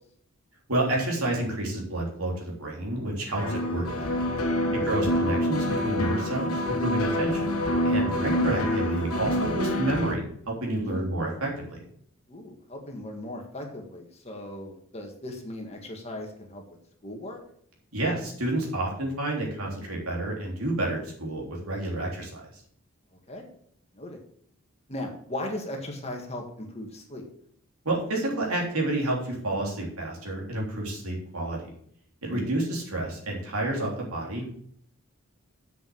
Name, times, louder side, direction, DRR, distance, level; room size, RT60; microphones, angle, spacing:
voice 1, 0.7-4.2 4.8-7.6 7.8-11.8 17.9-22.4 27.8-31.7 32.2-34.5, right 2 dB, 80° right, -1 dB, 3.4 m, -29 dB
sound 1, 3.4-10.1, left 1 dB, 85° left, 1.4 m, -27 dB
voice 2, 4.6-4.9 10.8-11.1 12.3-16.6 17.0-17.4 23.3-23.5 23.9-24.2 24.9-27.2 32.3-32.5, left 1 dB, 30° left, 2 dB, 1.9 m, -37 dB
7.6 x 6.9 x 6.4 m, 0.63 s
head